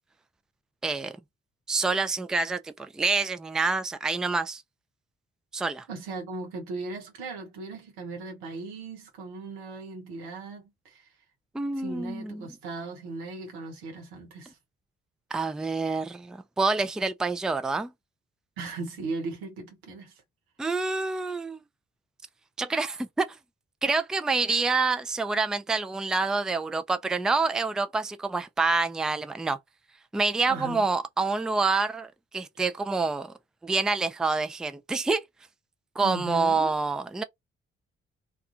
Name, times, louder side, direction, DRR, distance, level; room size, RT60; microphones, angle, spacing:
voice 1, 0.8-1.1 1.7-4.6 5.5-5.9 11.5-12.5 15.3-17.9 20.6-21.6 22.6-23.3 23.8-29.6 30.1-33.3 33.6-35.2 36.0-37.2, right 3 dB, ahead, 0.3 m, -27 dB
voice 2, 5.9-11.1 11.8-14.6 18.6-20.2 30.5-30.8 36.0-36.7, right 3 dB, 90° right, 0.9 m, -38 dB
2.4 x 2.3 x 2.7 m
hypercardioid pair, 40°, 31 cm